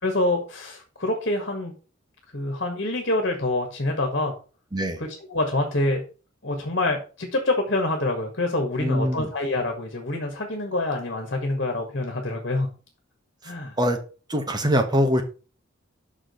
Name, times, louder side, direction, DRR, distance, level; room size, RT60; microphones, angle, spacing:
voice 1, 0.0-1.7 2.3-4.3 5.0-6.0 6.4-12.7 13.4-13.8, left 2 dB, 60° left, 3 dB, 1.8 m, -26 dB
voice 2, 8.8-9.3 13.8-14.0 14.3-15.2, equal, 20° right, 4 dB, 1.4 m, -23 dB
6.2 x 5.1 x 6.3 m, 0.36 s
head